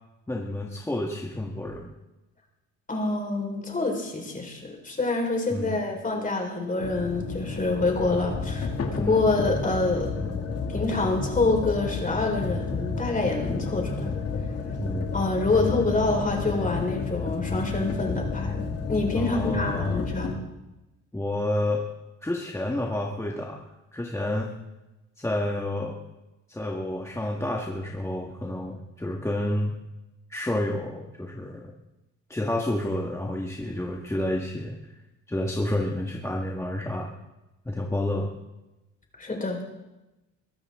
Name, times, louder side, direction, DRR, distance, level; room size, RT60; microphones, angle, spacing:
voice 1, 0.3-1.9 5.5-5.8 9.0-9.2 14.8-15.2 15.5-15.8 19.1-20.1 21.1-21.8 22.2-23.7 23.9-24.5 25.2-26.0 26.5-29.8 30.3-31.7 32.3-34.8 35.3-37.1 37.7-38.3, left 1 dB, 10° left, -1 dB, 1.8 m, -30 dB
voice 2, 2.9-8.7 8.9-10.1 10.7-14.1 15.1-20.4 39.2-39.6, left 3 dB, 25° left, 1 dB, 4.7 m, -26 dB
sound 1, 6.8-20.3, left 4 dB, 55° left, 2.5 m, -31 dB
22.5 x 13.5 x 3.8 m, 0.99 s
cardioid pair, 90°, 30 cm